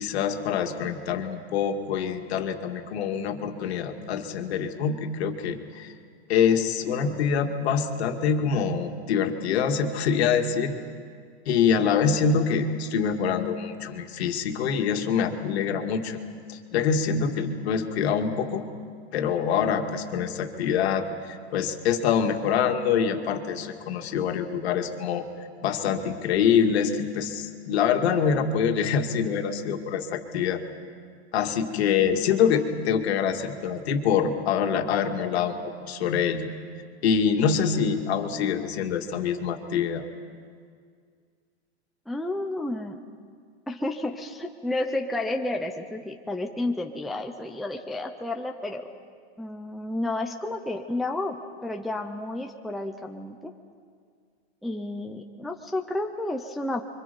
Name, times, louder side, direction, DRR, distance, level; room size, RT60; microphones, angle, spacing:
voice 1, 0.0-5.9 6.3-10.7 11.5-16.2 16.5-18.7 19.1-25.3 25.6-30.6 31.3-36.5 37.0-40.1, left 7 dB, 65° left, 4 dB, 2.3 m, -25 dB
voice 2, 42.1-43.0 43.7-48.9 49.4-53.5 54.6-56.8, left 2 dB, ahead, 3 dB, 0.6 m, -31 dB
29.5 x 24.5 x 5.4 m, 2.1 s
supercardioid pair, 160°, 34 cm